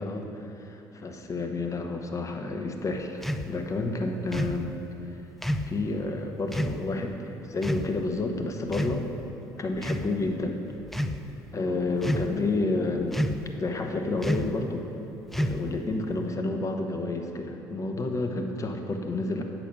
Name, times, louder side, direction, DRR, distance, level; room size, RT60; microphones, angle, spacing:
voice 1, 0.0-4.8 5.1-5.2 5.7-9.1 9.6-10.6 11.5-13.2 13.6-14.9 15.4-19.4, left 2 dB, 30° left, 4 dB, 1.0 m, -30 dB
sound 1, 3.2-3.5 4.3-4.6 5.4-5.7 6.5-6.8 7.6-7.9 8.7-9.3 9.8-10.1 10.8-11.2 12.0-12.4 13.1-13.5 14.2-14.6 15.3-15.8, equal, ahead, 0.4 m, -29 dB
8.4 x 6.0 x 6.2 m, 3.0 s
figure-of-eight pair, 55°, 10 cm